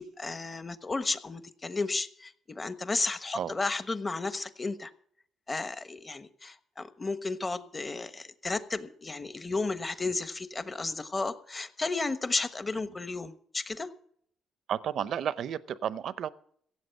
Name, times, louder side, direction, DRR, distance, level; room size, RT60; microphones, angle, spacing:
voice 1, 0.0-4.9 5.5-13.9, left 3 dB, 25° left, 12 dB, 1.1 m, -33 dB
voice 2, 14.7-16.3, right 9 dB, 70° right, 17 dB, 0.7 m, -32 dB
16.5 x 7.7 x 7.8 m, 0.63 s
cardioid pair, 90°, 0 cm